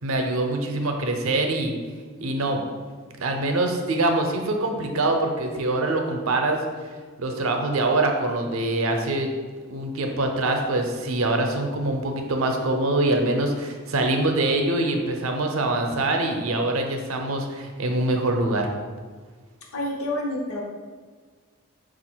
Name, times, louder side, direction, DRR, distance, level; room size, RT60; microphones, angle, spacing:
voice 1, 0.0-1.7 2.2-2.6 3.2-6.6 7.2-9.3 9.7-18.7, right 2 dB, 75° right, 4 dB, 0.6 m, -24 dB
voice 2, 19.7-20.6, left 1 dB, 85° left, -2 dB, 0.9 m, -28 dB
4.1 x 2.4 x 4.4 m, 1.5 s
head